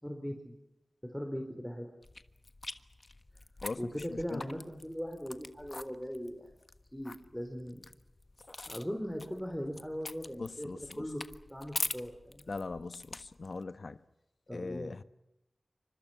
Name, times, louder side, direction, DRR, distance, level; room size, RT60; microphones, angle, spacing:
voice 1, 0.0-0.5 1.1-1.9 3.8-6.5 6.9-7.8 8.7-10.7 11.0-11.2 11.5-12.4 14.5-14.9, equal, 5° left, 4.5 m, -39 dB
sound 1, 2.0-13.6, left 2 dB, 45° left, 1.4 m, -44 dB
voice 2, 3.6-4.0 4.3-4.4 10.4-11.1 12.5-14.0 14.5-15.0, left 3 dB, 70° left, 1.2 m, -40 dB
28.5 x 25.5 x 6.0 m
cardioid pair, 45°, 0 cm